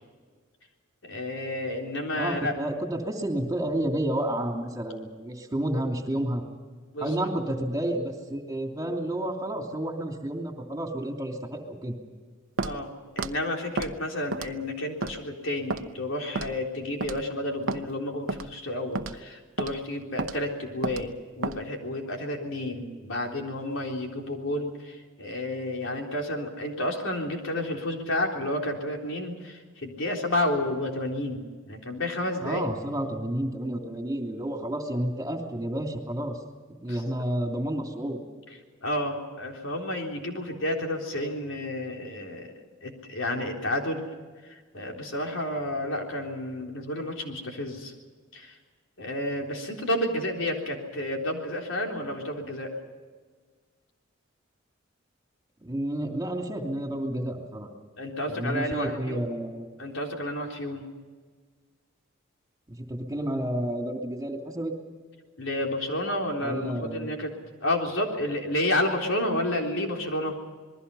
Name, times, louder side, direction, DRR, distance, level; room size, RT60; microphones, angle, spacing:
voice 1, 1.0-2.5 6.9-7.2 12.6-32.6 36.9-37.0 38.8-42.5 42.8-44.1 44.4-47.9 48.3-48.6 49.0-52.7 58.0-59.3 59.8-60.8 65.4-67.3 67.6-70.4, left 1 dB, 75° left, 1 dB, 3.8 m, -31 dB
voice 2, 2.2-6.4 7.0-12.0 32.4-36.4 36.8-38.2 55.6-57.7 58.3-59.7 62.7-64.7 66.4-67.1, right 1 dB, 20° right, 2 dB, 2.8 m, -30 dB
Walk footsteps, 12.6-12.8 13.2-13.3 13.8-13.9 14.3-14.6 15.0-15.2 15.7-15.8 16.4-16.6 17.0-17.2 17.7-17.8 18.3-18.5 18.9-19.2 19.6-19.7 20.2-20.4 20.8-21.0 21.4-21.6, right 3 dB, 80° right, 0.9 m, -30 dB
27.5 x 21.0 x 5.6 m, 1.5 s
head